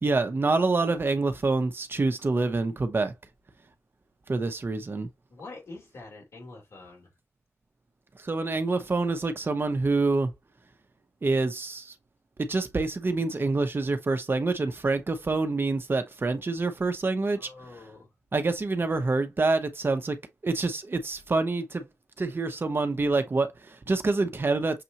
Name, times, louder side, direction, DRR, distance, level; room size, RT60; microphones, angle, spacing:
voice 1, 0.0-3.1 4.3-5.1 8.2-10.3 11.2-11.9 12.4-17.5 18.3-20.2 20.4-21.8 22.2-24.8, right 3 dB, 45° right, 1.0 m, -26 dB
voice 2, 5.3-7.1 17.3-18.1, left 3 dB, 90° left, 2.8 m, -45 dB
6.7 x 2.6 x 2.9 m
cardioid pair, 65°, 5 cm